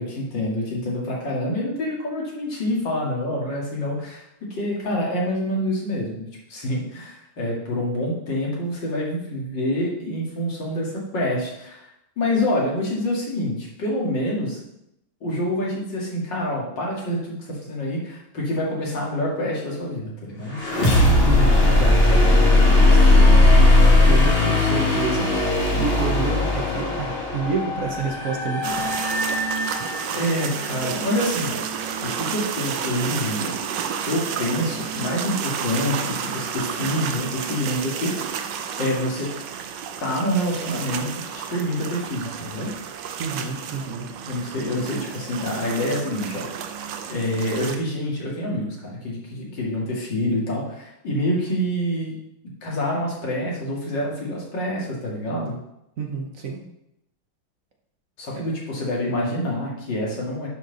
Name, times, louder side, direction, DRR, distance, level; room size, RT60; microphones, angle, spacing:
voice 1, 0.0-11.9 12.2-14.6 15.2-20.6 30.1-31.6 32.0-38.4 38.8-39.3 40.0-42.7 44.3-46.5 47.1-52.1 52.6-55.6 58.2-60.5, left 1 dB, 55° left, -4 dB, 2.8 m, -27 dB
sound 1, 20.5-30.3, left 2 dB, 30° left, 1.7 m, -17 dB
voice 2, 21.2-23.3 24.0-25.3 25.8-29.0 43.2-44.1 56.0-56.6 58.3-58.4, right 4 dB, 50° right, 1 dB, 1.2 m, -29 dB
sound 2, 28.6-47.8, right 7 dB, 70° right, 1.2 m, -31 dB
11.5 x 4.6 x 4.0 m, 0.82 s
omnidirectional pair, 2.3 m